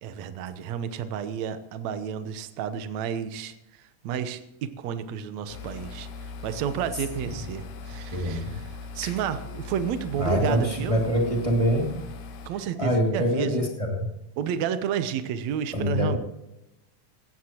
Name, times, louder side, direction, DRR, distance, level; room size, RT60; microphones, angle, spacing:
voice 1, 0.0-3.5 4.0-6.1 6.4-11.0 12.5-13.6 14.4-16.2, right 8 dB, 70° right, 10 dB, 2.1 m, -31 dB
sound 1, 5.5-12.5, left 4 dB, 80° left, 2.6 m, -40 dB
voice 2, 8.1-8.5 9.0-9.1 10.2-12.0 12.8-14.1 15.7-16.2, equal, 10° right, -1 dB, 2.1 m, -25 dB
17.5 x 15.5 x 3.0 m, 0.89 s
omnidirectional pair, 3.5 m